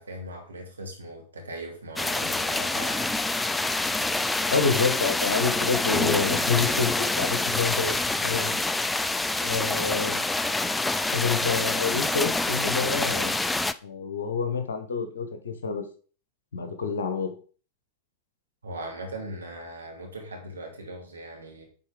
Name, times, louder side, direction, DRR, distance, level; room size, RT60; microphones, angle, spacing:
voice 1, 0.0-3.1 18.6-21.6, right 1 dB, 75° right, 3 dB, 2.5 m, -39 dB
sound 1, 2.0-13.7, left 2 dB, 10° left, 0.4 m, -26 dB
voice 2, 4.5-8.0 8.2-8.5 9.4-10.2 11.1-13.4 13.8-15.8 16.5-17.3, left 5 dB, 65° left, 9 dB, 1.4 m, -28 dB
9.3 x 4.4 x 4.9 m, 0.40 s
figure-of-eight pair, 90°, 0 cm